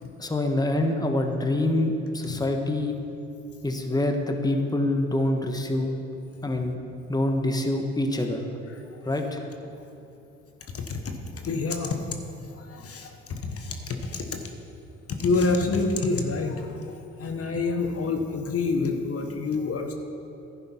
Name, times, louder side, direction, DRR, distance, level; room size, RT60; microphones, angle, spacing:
voice 1, 0.2-3.0 3.6-5.9 6.4-6.8 7.1-8.4 9.1-9.4, left 1 dB, 15° left, 4 dB, 1.3 m, -25 dB
voice 2, 8.7-9.1 10.7-12.0 12.6-14.4 15.1-19.9, left 3 dB, 50° left, 4 dB, 1.2 m, -28 dB
11.0 x 9.7 x 4.5 m, 2.8 s
hypercardioid pair, 60°, 30 cm